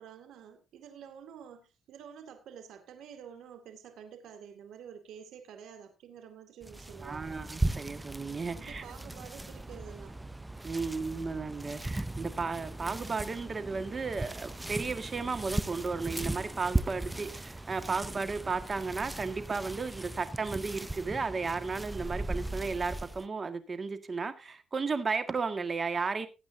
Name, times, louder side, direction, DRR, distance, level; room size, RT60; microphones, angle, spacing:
voice 1, 0.0-7.4 8.5-10.2, right 8 dB, 80° right, 2.3 m, -49 dB
sound 1, 6.6-23.3, right 2 dB, 10° right, 0.5 m, -38 dB
voice 2, 7.0-8.8 10.6-26.3, right 4 dB, 35° right, 1.8 m, -34 dB
19.0 x 8.7 x 2.8 m
cardioid pair, 90°, 0 cm